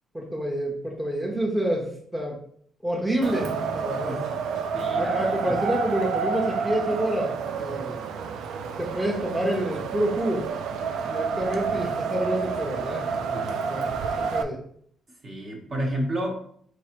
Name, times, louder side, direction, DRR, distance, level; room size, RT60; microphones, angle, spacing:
voice 1, 0.1-2.4 2.8-4.2 5.0-8.0 8.8-10.5 11.1-13.1 13.5-14.6, right 1 dB, 10° right, -1 dB, 0.7 m, -28 dB
Wind, 3.2-14.4, right 5 dB, 80° right, 0.3 m, -29 dB
voice 2, 4.7-5.6 13.2-13.6 15.2-16.3, right 1 dB, 45° right, 0 dB, 1.1 m, -31 dB
4.7 x 3.1 x 3.0 m, 0.63 s
cardioid pair, 90°, 0 cm